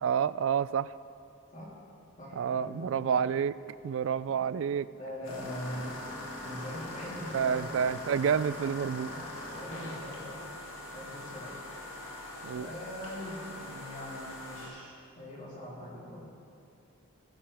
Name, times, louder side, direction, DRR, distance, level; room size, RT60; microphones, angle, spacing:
voice 1, 0.0-0.9 2.3-3.6 3.8-4.9 7.3-9.1 12.4-12.7, right 7 dB, 60° right, 16 dB, 0.3 m, -29 dB
voice 2, 2.2-3.0 4.4-4.5 4.9-5.9 6.4-7.8 9.1-9.3 9.5-10.4 10.9-11.6 12.5-16.2, equal, 35° left, -8 dB, 3.5 m, -42 dB
sound 1, 5.2-14.7, left 1 dB, 65° left, 2.9 m, -42 dB
19.0 x 11.0 x 3.5 m, 2.5 s
head